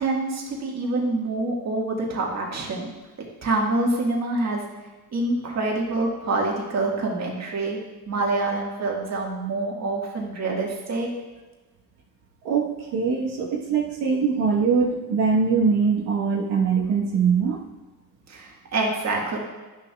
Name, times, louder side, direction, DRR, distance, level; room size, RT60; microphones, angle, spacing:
voice 1, 0.0-2.9 3.2-4.7 5.1-7.8 8.1-11.1 18.3-19.4, right 2 dB, 40° right, -1 dB, 1.7 m, -26 dB
voice 2, 12.4-17.6, right 5 dB, 75° right, -4 dB, 1.3 m, -22 dB
11.0 x 6.6 x 2.4 m, 1.2 s
cardioid pair, 110°, 39 cm